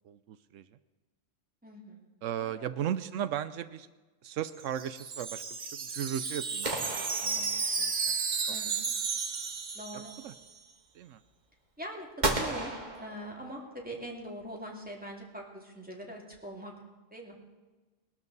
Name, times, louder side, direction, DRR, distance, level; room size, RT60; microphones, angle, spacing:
voice 1, 0.0-0.7 2.2-3.9 4.2-8.2 8.5-8.6 9.9-10.3 10.9-11.2, right 10 dB, 85° right, 12 dB, 1.0 m, -37 dB
voice 2, 1.6-2.1 2.4-2.7 8.5-8.8 9.7-10.1 11.8-12.7 13.0-16.7 17.1-17.4, equal, 5° right, -1 dB, 2.4 m, -43 dB
Wind chime, 4.5-10.5, right 5 dB, 70° right, 1.4 m, -33 dB
sound 1, 6.6-8.1 12.2-13.8, right 2 dB, 35° right, 1.8 m, -34 dB
21.0 x 12.5 x 4.0 m, 1.2 s
omnidirectional pair, 1.3 m